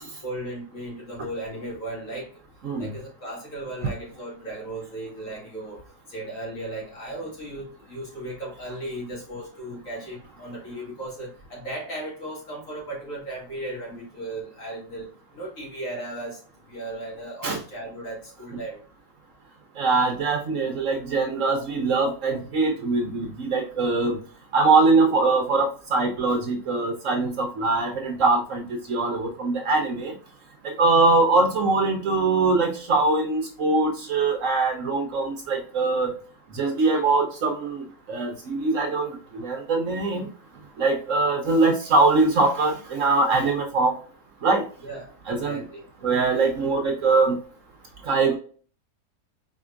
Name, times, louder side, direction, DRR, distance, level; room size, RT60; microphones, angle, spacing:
voice 1, 0.2-2.3 2.8-5.8 6.1-18.8 44.8-45.8, right 1 dB, 55° left, -4 dB, 2.7 m, -36 dB
voice 2, 2.6-2.9 17.4-17.6 19.8-24.2 24.5-28.6 28.9-30.1 30.8-36.1 36.5-40.3 40.8-43.9 44.4-44.6 45.3-45.6 46.0-47.4 48.0-48.3, right 3 dB, 60° right, 3 dB, 1.1 m, -22 dB
4.7 x 4.2 x 2.5 m, 0.42 s
omnidirectional pair, 1.7 m